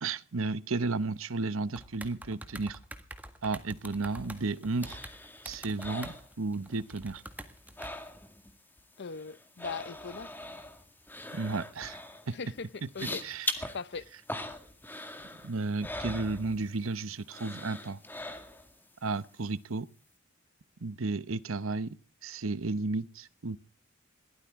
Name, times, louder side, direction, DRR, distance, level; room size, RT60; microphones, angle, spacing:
voice 1, 0.0-2.8 3.4-5.0 5.4-7.2 11.3-12.0 12.3-12.4 13.2-13.5 15.4-18.0 19.0-19.9 20.8-21.9 22.2-23.6, right 3 dB, 80° right, 0.9 m, -33 dB
sound 1, 1.8-7.9, right 1 dB, 10° right, 1.7 m, -45 dB
sound 2, 3.8-6.9 7.2-8.5 8.8-16.9 17.3-18.8 19.2-19.3, left 1 dB, 10° left, 2.0 m, -42 dB
voice 2, 9.0-10.3 12.3-13.2 13.7-14.1, left 5 dB, 55° left, 0.7 m, -39 dB
22.0 x 16.5 x 3.6 m
head